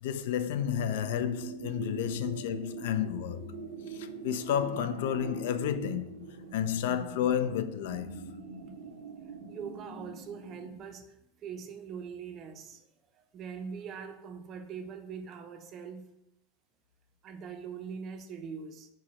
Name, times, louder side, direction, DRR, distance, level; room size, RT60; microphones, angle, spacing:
voice 1, 0.0-3.5 3.9-8.2, left 9 dB, 70° left, 0.3 m, -31 dB
sound 1, 0.6-10.8, right 5 dB, 80° right, 0.6 m, -44 dB
voice 2, 9.5-12.9 13.1-16.1 17.2-18.9, right 6 dB, 35° right, 0.5 m, -42 dB
4.5 x 2.1 x 4.1 m
hypercardioid pair, 115°, 0 cm